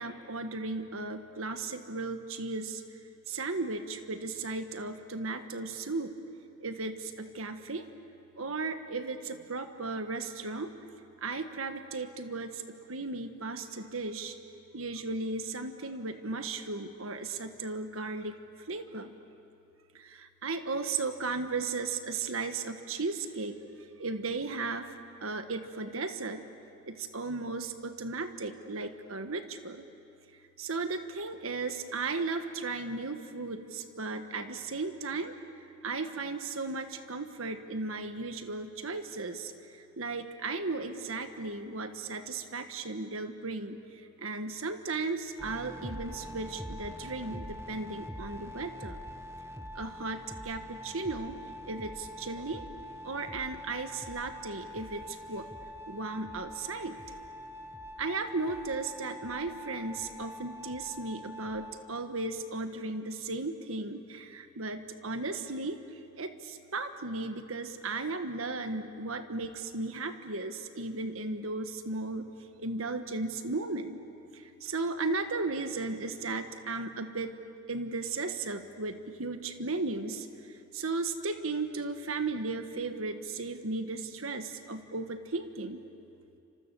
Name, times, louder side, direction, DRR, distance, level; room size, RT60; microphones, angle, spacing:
voice 1, 0.0-2.8 3.3-6.1 6.6-7.9 8.4-10.7 11.2-14.3 14.7-18.4 18.7-19.1 19.9-23.6 24.0-24.9 25.2-26.4 26.9-29.8 30.6-35.3 35.8-49.0 49.7-51.4 51.7-52.6 53.0-55.5 55.9-57.0 58.0-72.2 72.6-74.0 74.3-77.4 77.7-85.8, right 3 dB, 85° right, 8 dB, 1.5 m, -35 dB
sound 1, 45.4-61.7, equal, 15° right, 1.1 m, -44 dB
29.5 x 26.5 x 7.0 m, 2.7 s
head